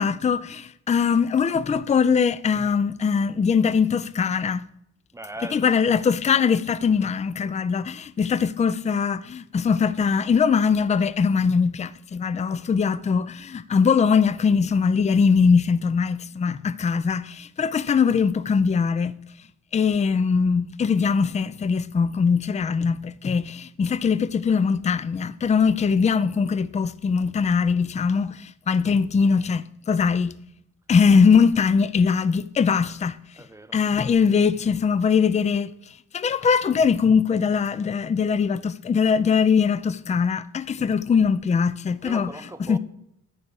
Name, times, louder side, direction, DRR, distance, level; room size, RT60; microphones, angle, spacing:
voice 1, 0.0-4.6 5.5-19.2 19.7-30.4 30.9-33.2 33.7-35.7 36.1-42.3 42.7-42.8, left 6 dB, 25° left, 0.4 m, -21 dB
voice 2, 5.1-5.8 12.5-12.6 33.4-33.8 36.4-36.5 42.0-42.8, right 1 dB, 10° right, 0.7 m, -39 dB
11.0 x 4.7 x 6.4 m
cardioid pair, 85°, 30 cm